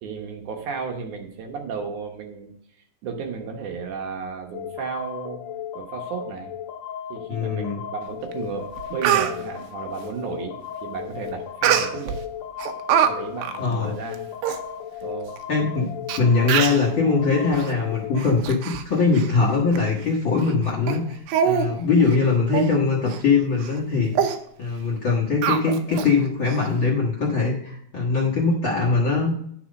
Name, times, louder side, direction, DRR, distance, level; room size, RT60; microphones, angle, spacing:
voice 1, 0.0-5.4 5.8-6.5 7.1-12.2 13.0-14.3 15.0-15.4 15.8-15.9 16.4-16.5, right 5 dB, 65° right, 2 dB, 2.4 m, -34 dB
sound 1, 4.5-18.3, left 9 dB, 85° left, 1.5 m, -36 dB
voice 2, 7.3-7.8 13.6-13.9 15.5-15.9 16.2-29.3, left 4 dB, 50° left, -3 dB, 1.6 m, -22 dB
Speech, 8.3-8.4 8.8-9.3 11.6-12.2 12.6-13.1 13.4-13.6 14.1-14.2 14.4-14.6 15.4-15.5 16.1-16.2 16.5-16.9 17.5-17.7 18.2-18.8 19.1-19.3 19.8-19.9 20.4-20.5 20.9-21.0 21.3-21.7 22.0-22.2 22.5-22.7 23.1-23.2 23.6-23.8 24.2-24.4 25.4-26.1 26.5-26.6, right 9 dB, 85° right, 2.6 m, -23 dB
10.5 x 6.1 x 5.1 m, 0.69 s
omnidirectional pair, 4.0 m